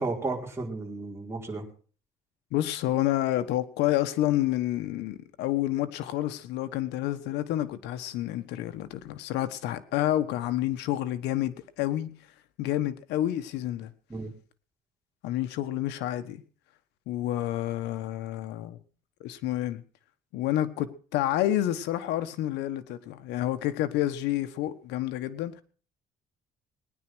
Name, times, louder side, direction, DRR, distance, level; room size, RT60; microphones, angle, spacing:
voice 1, 0.0-1.6 14.1-14.3, right 3 dB, 15° right, 4.6 m, -33 dB
voice 2, 2.5-12.1 12.6-13.9 15.2-16.4 17.1-18.8 19.2-19.8 20.3-25.6, left 13 dB, 90° left, 1.3 m, -29 dB
19.0 x 10.0 x 6.2 m
cardioid pair, 110°, 17 cm